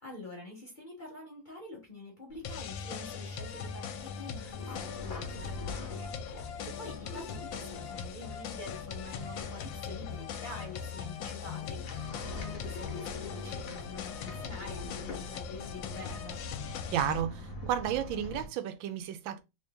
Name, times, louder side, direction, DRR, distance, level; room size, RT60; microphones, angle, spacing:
voice 1, 0.0-16.4, left 2 dB, 35° left, 0.9 m, -47 dB
sound 1, 2.3-18.5, left 2 dB, 60° left, 1.0 m, -45 dB
sound 2, 2.4-17.2, left 7 dB, 85° left, 1.3 m, -40 dB
voice 2, 16.9-19.4, right 10 dB, 85° right, 1.3 m, -32 dB
3.2 x 2.7 x 3.4 m
omnidirectional pair, 2.0 m